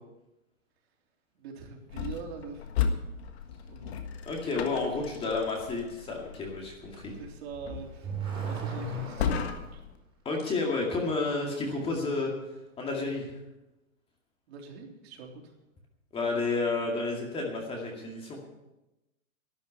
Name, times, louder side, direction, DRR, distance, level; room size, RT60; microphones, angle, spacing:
voice 1, 1.3-2.7 3.7-3.9 7.2-9.4 9.7-9.8 14.5-15.5, right 5 dB, 50° right, 1 dB, 3.6 m, -43 dB
sound 1, 1.9-10.0, left 7 dB, 50° left, 1.7 m, -36 dB
voice 2, 4.3-7.1 10.3-12.3 12.8-13.3 16.1-18.4, left 3 dB, 15° left, 1 dB, 2.2 m, -31 dB
Car / Accelerating revving vroom, 7.5-9.7, right 3 dB, 10° right, 3.6 m, -35 dB
12.0 x 9.5 x 8.5 m, 0.97 s
hypercardioid pair, 155°, 39 cm